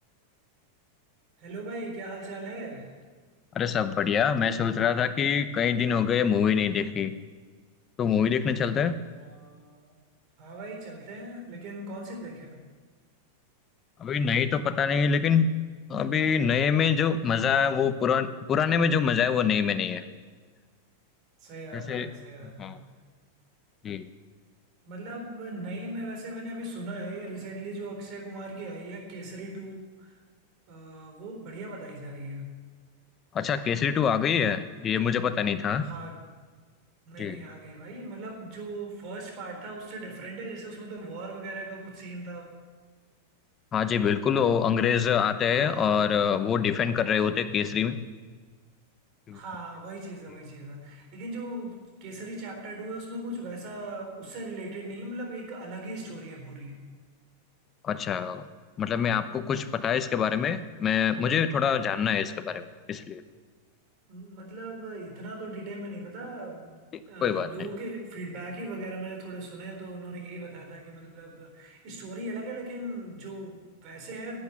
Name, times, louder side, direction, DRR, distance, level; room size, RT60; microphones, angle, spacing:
voice 1, 1.4-2.9 9.2-9.9 10.4-12.6 21.4-22.8 24.9-30.1 30.7-32.6 35.8-36.2 37.1-42.5 45.5-46.1 49.3-56.9 64.1-66.8 67.1-74.4, right 1 dB, 45° right, 2 dB, 4.0 m, -39 dB
voice 2, 3.5-7.2 8.0-9.0 14.0-15.6 15.9-20.0 21.7-22.1 22.4-22.8 23.8-24.1 33.3-35.9 37.2-37.4 43.7-48.0 49.3-49.4 57.8-58.4 58.8-63.2 67.2-67.5, left 7 dB, 25° left, 10 dB, 0.8 m, -25 dB
11.5 x 8.4 x 9.0 m, 1.5 s
supercardioid pair, 140°, 0 cm